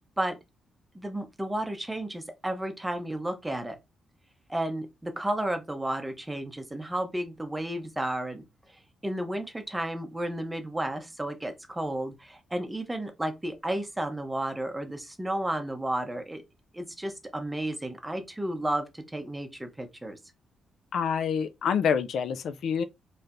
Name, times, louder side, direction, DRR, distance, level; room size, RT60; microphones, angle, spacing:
voice 1, 0.9-3.8 4.5-8.4 9.0-16.4 16.7-20.2, right 1 dB, 10° right, 0.7 m, -32 dB
voice 2, 20.9-22.8, left 7 dB, 65° left, 0.4 m, -27 dB
4.3 x 3.2 x 2.5 m
wide cardioid pair, 155°, 0 cm